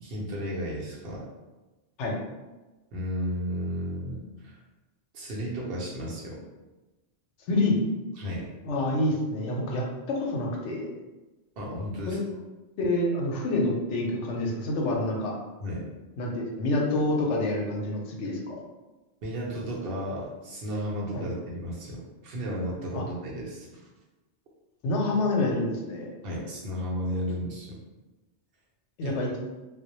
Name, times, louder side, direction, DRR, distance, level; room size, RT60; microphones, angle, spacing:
voice 1, 0.0-1.3 2.9-4.6 5.1-6.4 8.2-8.5 11.6-12.2 15.6-15.9 19.2-23.7 26.2-27.8 29.0-29.2, equal, 60° right, -3 dB, 0.7 m, -33 dB
voice 2, 8.6-10.9 12.1-12.2 12.8-15.3 16.2-18.5 21.1-21.3 22.9-23.0 24.8-26.1 29.0-29.4, left 2 dB, 90° left, 0 dB, 0.9 m, -27 dB
2.1 x 2.0 x 2.8 m, 1.1 s
omnidirectional pair, 1.2 m